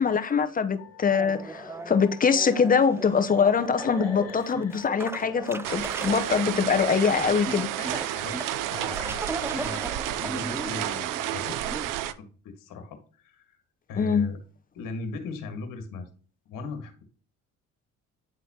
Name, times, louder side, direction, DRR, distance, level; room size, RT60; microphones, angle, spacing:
voice 1, 0.0-7.7 14.0-14.3, left 6 dB, 25° left, 0.7 m, -23 dB
sound 1, 0.8-8.8, left 5 dB, 45° left, 1.3 m, -47 dB
sound 2, 1.1-11.9, right 2 dB, 10° right, 0.4 m, -38 dB
sound 3, 5.6-12.1, right 13 dB, 65° right, 0.6 m, -31 dB
voice 2, 8.6-13.6 13.9-14.4 14.7-16.1 16.4-17.0, left 3 dB, 65° left, 1.5 m, -38 dB
9.4 x 4.1 x 2.8 m
supercardioid pair, 90°, 34 cm